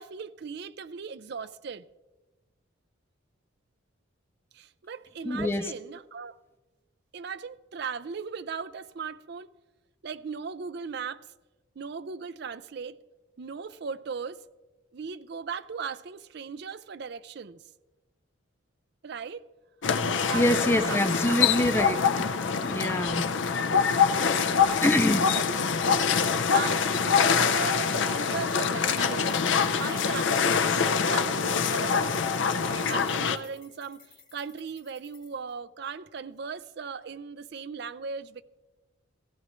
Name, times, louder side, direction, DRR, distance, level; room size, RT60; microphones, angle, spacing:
voice 1, 0.0-1.9 4.5-6.4 7.1-9.5 10.0-11.2 11.8-13.0 13.4-14.4 14.9-17.6 19.0-19.5 20.2-21.4 25.4-25.5 26.2-29.3 29.8-38.4, right 5 dB, 55° right, 0.4 m, -38 dB
voice 2, 5.2-5.7 20.3-22.3 22.6-23.3 24.8-25.3 28.1-28.2, left 1 dB, 10° left, 0.4 m, -25 dB
sound 1, 19.8-33.4, left 6 dB, 70° left, 0.6 m, -25 dB
sound 2, 29.1-35.5, left 6 dB, 50° left, 4.6 m, -56 dB
17.0 x 15.5 x 3.1 m
head